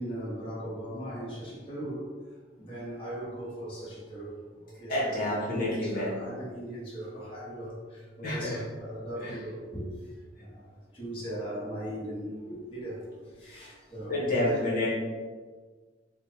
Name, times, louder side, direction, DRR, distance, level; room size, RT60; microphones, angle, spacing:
voice 1, 0.0-2.1 2.6-9.9 10.4-14.6, right 1 dB, 30° left, -8 dB, 1.3 m, -39 dB
voice 2, 4.9-6.2 8.2-8.6 9.1-9.3 13.4-13.6 14.1-14.9, left 1 dB, 55° left, -6 dB, 1.2 m, -29 dB
5.0 x 2.3 x 2.8 m, 1.4 s
head